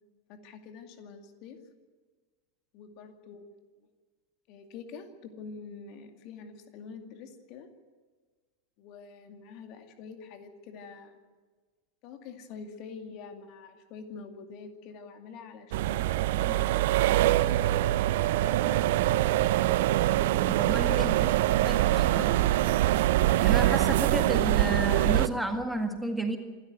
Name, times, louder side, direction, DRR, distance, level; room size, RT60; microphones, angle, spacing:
voice 1, 0.3-1.6 2.7-3.5 4.5-7.7 8.8-11.2 12.0-16.8 18.3-19.1 21.0-22.0, left 5 dB, 40° left, 6 dB, 2.3 m, -46 dB
sound 1, 15.7-25.3, right 14 dB, 50° right, 0.7 m, -24 dB
voice 2, 20.4-21.1 21.6-22.4 23.4-26.4, right 1 dB, ahead, 5 dB, 1.8 m, -32 dB
26.5 x 13.5 x 9.3 m, 1.4 s
figure-of-eight pair, 90°, 0 cm